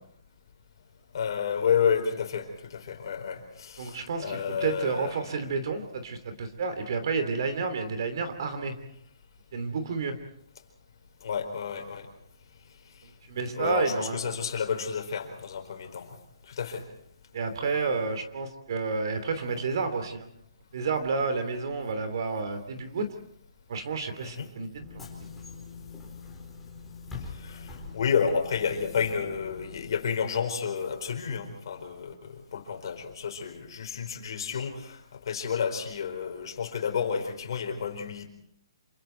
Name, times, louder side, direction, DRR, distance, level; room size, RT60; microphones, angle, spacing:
voice 1, 1.1-5.4 11.2-12.1 13.6-16.1 16.5-16.8 24.2-24.5 27.4-38.3, left 7 dB, 50° left, 5 dB, 4.5 m, -30 dB
voice 2, 3.8-8.7 9.5-10.2 13.0-14.3 17.3-20.3 20.7-23.1 23.7-24.9, right 4 dB, 50° right, 8 dB, 3.1 m, -30 dB
Bus / Engine, 24.8-29.9, left 4 dB, 5° left, 4.2 m, -43 dB
27.5 x 25.5 x 4.6 m, 0.68 s
hypercardioid pair, 165°, 3 cm